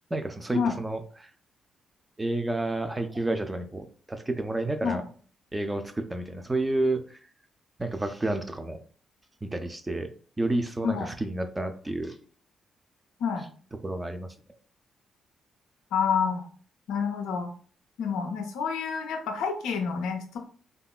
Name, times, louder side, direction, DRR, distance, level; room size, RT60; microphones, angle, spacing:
voice 1, 0.1-1.3 2.2-5.0 5.5-7.2 7.8-8.8 9.4-10.1 10.4-12.2 13.8-14.3, right 2 dB, 20° right, 7 dB, 0.4 m, -30 dB
voice 2, 15.9-16.5 16.9-17.5 18.0-20.4, left 6 dB, 70° left, 4 dB, 0.4 m, -28 dB
2.7 x 2.3 x 2.2 m, 0.43 s
hypercardioid pair, 40°, 0 cm